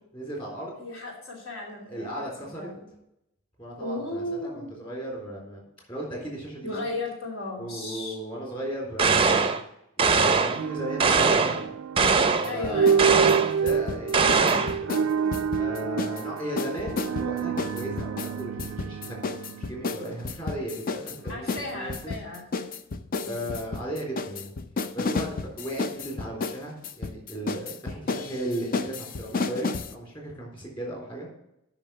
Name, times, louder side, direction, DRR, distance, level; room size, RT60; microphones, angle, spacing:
voice 1, 0.1-0.7 1.9-2.7 3.6-4.2 4.5-5.6 5.9-6.8 7.6-9.6 10.0-11.7 12.0-12.8 13.6-14.9 15.5-19.2 19.5-22.1 23.3-24.5 24.9-25.3 25.5-31.3, right 1 dB, 25° left, -2 dB, 3.6 m, -36 dB
voice 2, 0.8-2.3 2.5-2.8 3.8-4.7 6.6-8.2 12.5-13.5 21.3-22.7 23.1-23.5, left 2 dB, 70° left, -3 dB, 2.7 m, -35 dB
sound 1, 9.0-9.6 10.0-10.6 11.0-11.6 12.0-12.5 13.0-13.6 14.1-14.8, right 4 dB, 25° right, 0.5 m, -21 dB
sound 2, 10.5-20.6, right 7 dB, 80° right, 0.3 m, -28 dB
sound 3, 12.0-13.0 13.3-16.2 16.6-29.9, left 4 dB, 40° left, 0.4 m, -32 dB
8.9 x 6.0 x 5.8 m, 0.83 s
head